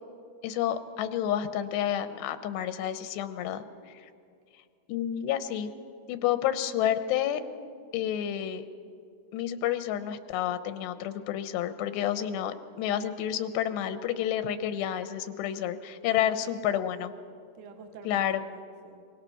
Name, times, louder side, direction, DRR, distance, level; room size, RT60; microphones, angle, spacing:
voice 1, 0.4-4.0 4.9-5.7 6.1-7.4 7.9-8.6 9.3-17.1 18.1-18.4, left 10 dB, 90° left, 10 dB, 3.1 m, -30 dB
voice 2, 17.5-19.0, right 5 dB, 70° right, 5 dB, 3.4 m, -48 dB
27.0 x 24.5 x 6.0 m, 2.4 s
omnidirectional pair, 4.9 m